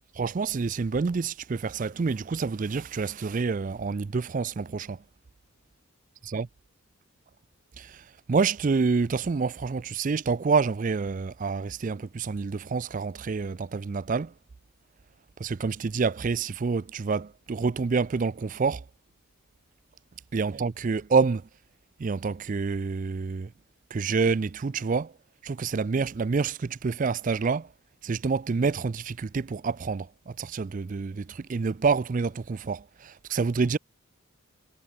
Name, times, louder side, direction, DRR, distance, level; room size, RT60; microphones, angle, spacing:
voice 1, 0.2-5.0 6.3-6.5 7.8-14.3 15.4-18.8 20.3-21.5 22.0-23.5 23.9-25.1 25.4-27.7 28.0-33.8, right 4 dB, 35° right, 0.4 m, -27 dB
head